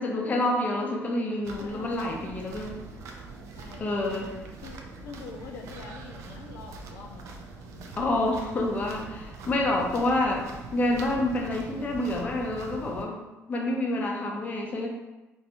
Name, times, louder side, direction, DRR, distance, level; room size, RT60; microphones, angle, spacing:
voice 1, 0.0-2.8 3.8-4.3 8.0-10.4 10.7-13.2 13.5-14.9, left 1 dB, 30° left, 0 dB, 0.6 m, -28 dB
sound 1, 1.4-13.0, right 3 dB, 75° right, 0.4 m, -43 dB
voice 2, 1.6-1.9 3.6-7.3 7.6-8.0 13.9-14.2, left 5 dB, 75° left, 2 dB, 0.4 m, -46 dB
3.3 x 2.6 x 2.8 m, 1.1 s
cardioid pair, 135°, 5 cm